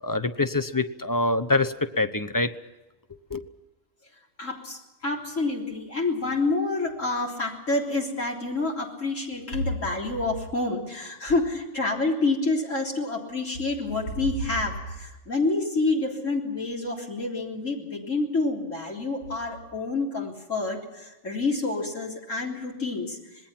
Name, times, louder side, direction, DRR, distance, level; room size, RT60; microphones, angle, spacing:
voice 1, 0.0-2.5 3.3-3.4, left 2 dB, 20° left, 11 dB, 0.7 m, -25 dB
voice 2, 4.4-23.2, left 3 dB, 70° left, -1 dB, 4.0 m, -28 dB
26.5 x 20.5 x 5.9 m, 1.0 s
omnidirectional pair, 1.4 m